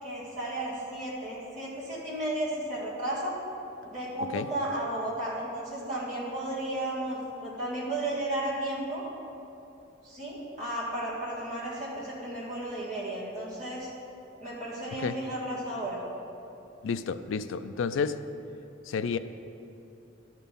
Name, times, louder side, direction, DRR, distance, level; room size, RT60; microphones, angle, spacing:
voice 1, 0.0-3.3 3.8-9.0 10.0-13.9 14.4-16.0, right 1 dB, 35° right, -7 dB, 1.9 m, -34 dB
voice 2, 16.8-18.2 18.9-19.2, left 5 dB, 85° left, 11 dB, 0.4 m, -30 dB
12.0 x 4.4 x 5.3 m, 2.8 s
head